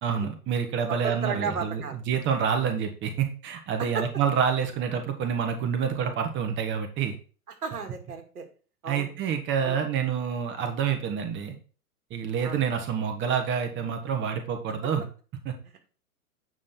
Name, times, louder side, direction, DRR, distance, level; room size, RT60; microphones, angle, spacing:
voice 1, 0.0-7.2 8.9-11.6 12.1-15.1 15.4-15.5, right 7 dB, 25° right, 6 dB, 1.4 m, -28 dB
voice 2, 0.9-2.0 3.8-4.0 7.6-8.4 8.8-9.1 9.6-9.8 12.4-12.6, right 6 dB, 75° right, 5 dB, 2.2 m, -33 dB
8.8 x 5.5 x 4.3 m, 0.38 s
hypercardioid pair, 110°, 46 cm